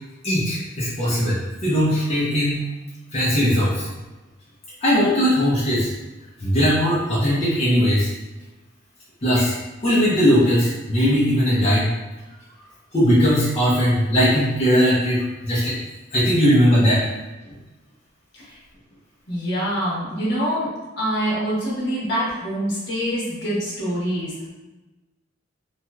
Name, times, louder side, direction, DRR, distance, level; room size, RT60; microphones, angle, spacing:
voice 1, 0.2-2.6 3.1-3.9 4.8-5.9 6.4-8.1 9.2-9.5 9.8-11.9 12.9-15.8 16.1-17.1, equal, 30° left, -10 dB, 0.7 m, -19 dB
voice 2, 19.3-20.7 21.0-24.5, equal, 60° left, -7 dB, 1.3 m, -25 dB
3.0 x 2.9 x 2.2 m, 1.1 s
head